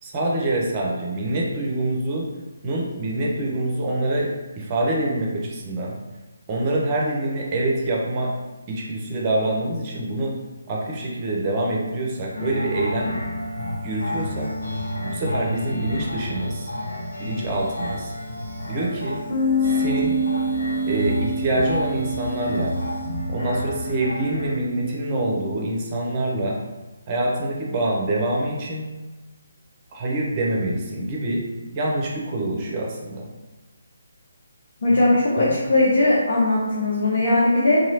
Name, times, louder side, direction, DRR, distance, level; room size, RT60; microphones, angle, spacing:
voice 1, 0.0-2.3 2.6-4.3 4.6-5.9 6.5-8.3 8.7-10.4 10.7-13.1 13.8-14.5 15.0-16.7 17.2-18.1 18.6-19.2 19.6-20.2 20.9-22.7 23.3-26.6 27.1-28.9 29.9-31.4 31.7-33.3 34.9-35.0 35.4-35.5, right 1 dB, 25° right, -2 dB, 0.6 m, -25 dB
sound 1, 12.3-24.5, left 1 dB, 75° left, 0.9 m, -30 dB
Bass guitar, 19.3-25.5, equal, 30° left, 1.3 m, -27 dB
voice 2, 34.8-37.8, left 2 dB, 55° left, -6 dB, 0.7 m, -19 dB
3.0 x 2.7 x 2.7 m, 1.2 s
figure-of-eight pair, 145°, 0 cm